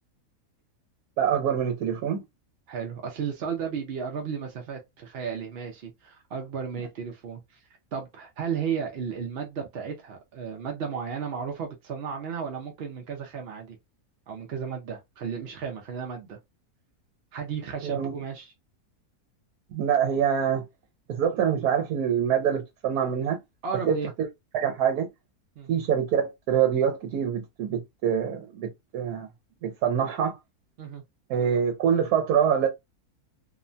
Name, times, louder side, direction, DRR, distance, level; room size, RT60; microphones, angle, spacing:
voice 1, 1.2-2.2 17.8-18.1 19.7-20.6 21.1-23.4 23.9-24.3 24.5-25.1 25.7-29.3 29.6-30.4 31.3-32.7, right 8 dB, 80° right, 1.1 m, -25 dB
voice 2, 2.7-7.6 7.9-13.8 14.3-16.4 17.3-18.5 23.6-24.1 25.6-25.7 30.8-31.0, right 6 dB, 60° right, 0.6 m, -34 dB
2.8 x 2.1 x 2.5 m
omnidirectional pair, 1.6 m